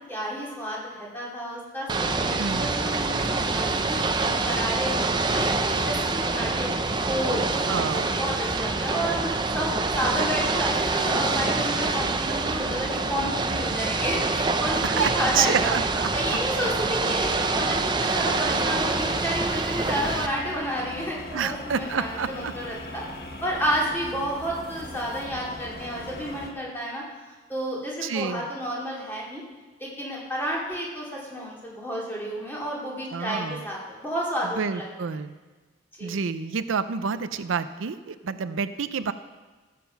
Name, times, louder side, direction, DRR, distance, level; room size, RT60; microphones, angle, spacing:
voice 1, 0.1-6.7 7.1-9.7 9.9-15.8 16.1-23.0 23.4-27.0 27.5-29.4 29.8-34.9 36.0-36.1, equal, 10° left, -5 dB, 2.5 m, -31 dB
Ocean / Boat Water vehicle, 1.9-20.3, right 3 dB, 25° right, 0.5 m, -26 dB
voice 2, 2.4-2.7 7.7-8.2 14.8-16.1 21.3-22.5 28.0-28.4 33.1-33.6 34.4-35.4 36.0-39.1, right 6 dB, 85° right, 12 dB, 0.5 m, -28 dB
sound 1, 18.2-26.5, left 1 dB, 50° left, 1.2 m, -40 dB
14.5 x 7.6 x 5.7 m, 1.3 s
head